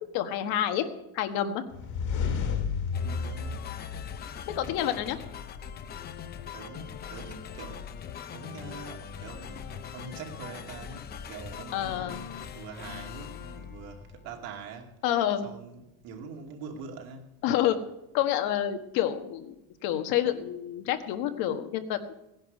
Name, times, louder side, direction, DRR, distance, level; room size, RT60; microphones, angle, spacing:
voice 1, 0.1-0.8 1.1-1.6 4.5-5.2 11.7-12.2 15.0-15.5 17.4-17.8 18.1-19.5 19.8-22.1, left 11 dB, 80° left, 1.4 m, -28 dB
sound 1, 1.7-4.7, left 6 dB, 55° left, 2.1 m, -32 dB
sound 2, 2.9-14.5, left 8 dB, 25° left, 0.5 m, -41 dB
voice 2, 3.0-3.8 6.5-9.7 9.9-14.9 15.4-17.3, right 5 dB, 75° right, 2.5 m, -44 dB
18.0 x 10.5 x 5.3 m
cardioid pair, 180°, 36 cm